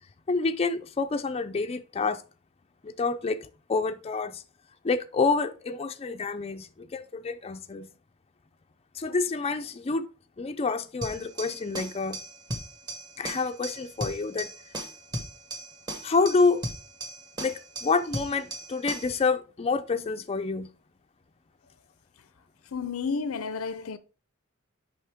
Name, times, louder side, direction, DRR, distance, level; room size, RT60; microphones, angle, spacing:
voice 1, 0.3-2.2 2.8-4.4 4.8-7.9 8.9-10.0 10.4-12.2 13.2-14.5 16.0-16.6 17.4-20.7, left 4 dB, 30° left, 0.4 m, -28 dB
sound 1, 11.0-19.2, right 1 dB, 20° right, 1.2 m, -37 dB
voice 2, 22.7-24.0, left 5 dB, 85° left, 0.6 m, -31 dB
6.5 x 5.2 x 3.5 m
head